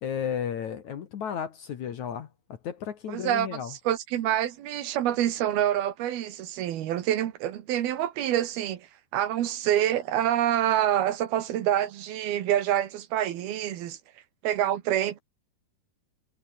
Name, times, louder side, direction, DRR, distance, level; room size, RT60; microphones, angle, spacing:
voice 1, 0.0-3.7, left 8 dB, 55° left, 2.5 m, -33 dB
voice 2, 3.1-8.9 9.1-14.0 14.4-15.2, right 11 dB, 70° right, 3.3 m, -27 dB
omnidirectional pair, 4.7 m